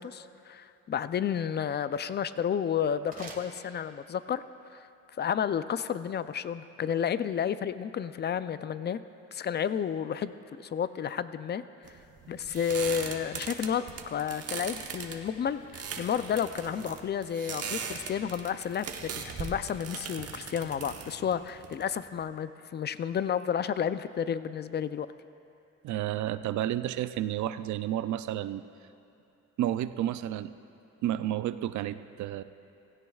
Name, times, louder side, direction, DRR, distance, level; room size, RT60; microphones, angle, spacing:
voice 1, 0.0-4.4 4.7-4.9 5.2-9.0 9.3-11.6 12.3-25.1, left 8 dB, 35° left, 14 dB, 0.4 m, -31 dB
sound 1, 2.9-4.3, right 3 dB, 30° right, 1.6 m, -49 dB
sound 2, 11.8-22.2, right 6 dB, 55° right, 1.1 m, -39 dB
voice 2, 25.8-28.6 29.6-30.5 31.0-32.4, right 12 dB, 70° right, 13 dB, 0.5 m, -31 dB
16.5 x 16.5 x 2.4 m, 2.8 s
cardioid pair, 90°, 30 cm